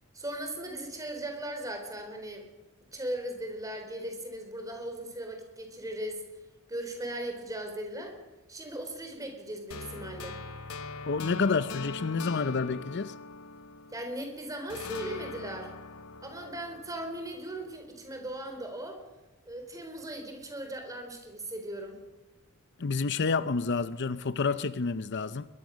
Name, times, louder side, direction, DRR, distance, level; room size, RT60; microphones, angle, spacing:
voice 1, 0.1-2.5 2.9-6.2 6.7-8.2 8.5-10.4 13.9-15.7 16.2-19.0 19.5-22.0, right 1 dB, 15° right, 4.1 m, -38 dB
sound 1, 9.7-14.2 14.7-17.8, left 4 dB, 70° left, 1.0 m, -42 dB
voice 2, 11.1-13.1 22.8-25.5, left 4 dB, 50° left, 0.6 m, -29 dB
22.0 x 21.5 x 6.4 m
head